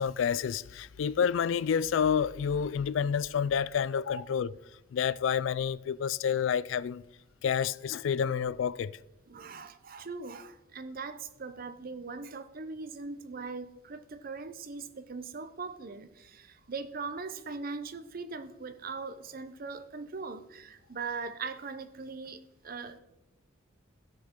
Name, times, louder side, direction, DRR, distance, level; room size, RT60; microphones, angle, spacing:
voice 1, 0.0-4.5 4.9-7.0 7.4-9.0, left 7 dB, 70° left, 0.3 m, -29 dB
voice 2, 9.3-23.0, right 4 dB, 45° right, 0.7 m, -40 dB
16.5 x 6.3 x 3.7 m
head